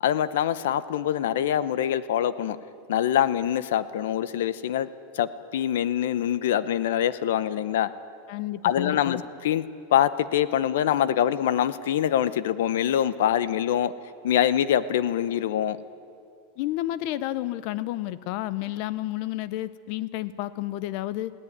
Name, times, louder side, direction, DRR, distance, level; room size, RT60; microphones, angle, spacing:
voice 1, 0.0-2.6 2.9-4.9 5.1-7.9 8.6-9.6 9.9-13.9 14.2-15.8, left 10 dB, 65° left, 16 dB, 0.8 m, -24 dB
voice 2, 8.3-9.2 16.6-21.3, left 15 dB, 40° left, 17 dB, 0.6 m, -31 dB
21.0 x 16.0 x 9.5 m, 2.6 s
supercardioid pair, 180°, 0 cm